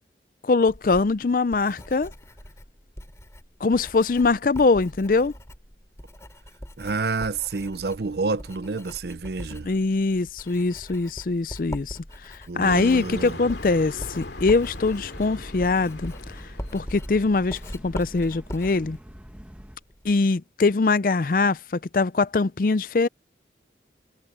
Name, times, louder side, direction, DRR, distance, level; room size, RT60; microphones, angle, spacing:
voice 1, 0.4-2.1 3.6-5.3 9.6-16.1 16.7-19.0 20.0-23.1, left 3 dB, 50° left, 0.5 m, -22 dB
Writing, 0.7-20.2, equal, 15° left, 2.9 m, -41 dB
voice 2, 6.8-9.7 12.5-13.4, right 4 dB, 65° right, 0.6 m, -29 dB
sound 1, 12.6-17.1, left 2 dB, 80° left, 2.4 m, -39 dB
sound 2, 14.3-19.8, equal, 5° right, 1.2 m, -45 dB
head